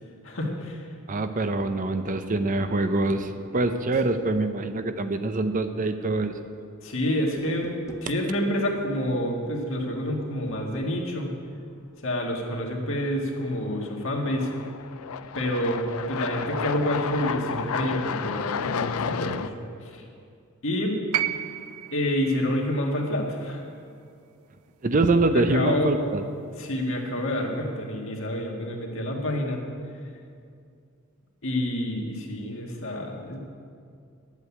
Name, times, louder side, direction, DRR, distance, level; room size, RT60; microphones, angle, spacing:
voice 1, 0.2-0.9 6.8-11.3 12.0-14.5 15.3-19.5 19.8-20.0 20.6-21.0 21.9-23.6 25.5-25.9 26.6-29.6 31.4-33.4, left 1 dB, 65° left, 0 dB, 1.9 m, -28 dB
voice 2, 1.1-6.3 24.8-26.2, right 2 dB, 40° right, 8 dB, 0.6 m, -24 dB
sound 1, 1.5-2.2 2.5-2.6 5.5-5.6 7.0-7.2 7.5-7.6 13.0-13.1 13.8-19.5, left 7 dB, 90° left, 0.5 m, -32 dB
sound 2, 7.4-8.1 10.5-11.0, left 1 dB, 15° left, 0.7 m, -44 dB
sound 3, 21.1-25.3 26.5-26.6, right 12 dB, 90° right, 0.5 m, -34 dB
11.5 x 8.2 x 8.4 m, 2.4 s
head